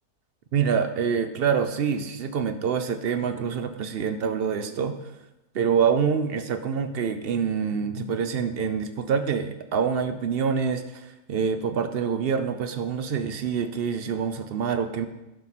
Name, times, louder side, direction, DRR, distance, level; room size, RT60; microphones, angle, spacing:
voice 1, 0.5-5.0 5.5-15.1, right 6 dB, 60° right, 9 dB, 0.6 m, -26 dB
11.5 x 5.8 x 4.1 m, 0.96 s
omnidirectional pair, 1.6 m